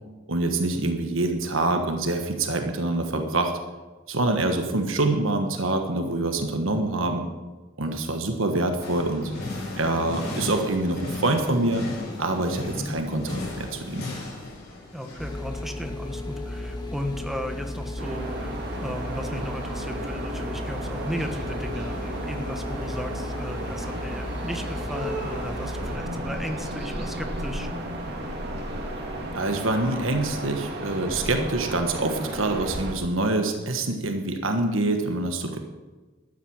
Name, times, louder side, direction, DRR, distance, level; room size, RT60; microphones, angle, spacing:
voice 1, 0.3-3.5 4.1-7.2 7.8-9.3 9.8-11.8 12.2-14.1 29.3-35.6, right 2 dB, 70° right, 5 dB, 1.4 m, -25 dB
sound 1, 8.8-15.5, left 2 dB, 55° left, 4.1 m, -35 dB
voice 2, 14.9-18.5 18.8-27.7 31.3-31.5, equal, ahead, 5 dB, 1.3 m, -35 dB
sound 2, 15.2-26.0, left 1 dB, 20° left, 1.8 m, -35 dB
sound 3, 18.0-32.9, right 1 dB, 55° right, 2.3 m, -33 dB
13.0 x 9.2 x 7.3 m, 1.3 s
head